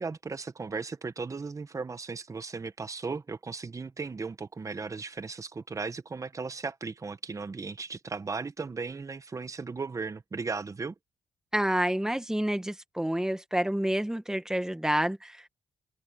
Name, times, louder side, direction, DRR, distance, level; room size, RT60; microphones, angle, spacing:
voice 1, 0.0-10.9, right 4 dB, 35° right, 1.3 m, -36 dB
voice 2, 11.5-15.5, right 1 dB, 5° right, 1.7 m, -28 dB
cardioid pair, 80°, 10 cm